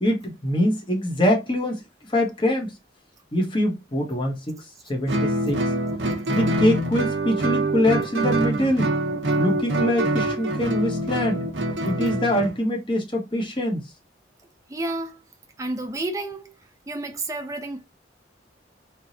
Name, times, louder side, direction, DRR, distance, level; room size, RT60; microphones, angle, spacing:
voice 1, 0.0-1.8 2.1-2.7 3.3-5.6 6.3-8.9 9.4-11.4 11.8-13.8, left 1 dB, 25° left, 1.2 m, -24 dB
Guitar, 5.1-12.6, right 1 dB, 90° right, 0.8 m, -25 dB
voice 2, 14.7-15.2 15.6-16.6 16.9-17.8, right 2 dB, 15° right, 0.6 m, -30 dB
3.5 x 3.0 x 2.7 m
head